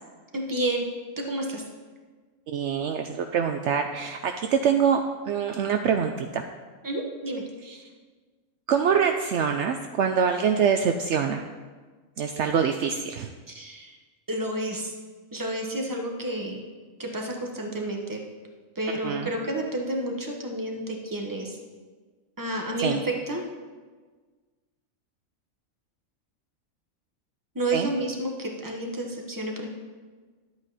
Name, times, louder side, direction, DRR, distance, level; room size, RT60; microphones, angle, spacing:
voice 1, 0.3-0.8 1.2-1.6 6.8-7.4 13.5-14.0 14.3-14.9 15.3-16.6 17.0-18.2 18.7-21.6 22.4-23.4 27.5-29.7, right 1 dB, 15° right, 1 dB, 1.2 m, -30 dB
voice 2, 2.5-6.4 7.7-7.8 8.7-11.4 12.2-13.3 19.0-19.3 22.8-23.0 27.7-27.9, right 7 dB, 70° right, 5 dB, 0.8 m, -25 dB
11.5 x 8.1 x 4.1 m, 1.4 s
omnidirectional pair, 1.4 m